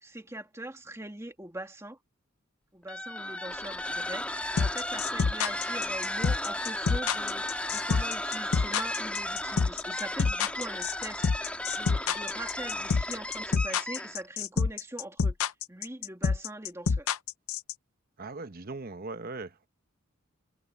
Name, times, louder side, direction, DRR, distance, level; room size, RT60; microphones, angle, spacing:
voice 1, 0.0-2.0 2.7-15.4 15.7-17.2, right 1 dB, 15° right, 2.3 m, -42 dB
sound 1, 2.8-14.3, left 1 dB, 5° left, 1.5 m, -35 dB
sound 2, 4.6-17.7, left 5 dB, 80° left, 0.6 m, -27 dB
voice 2, 18.2-19.7, right 3 dB, 45° right, 1.0 m, -39 dB
head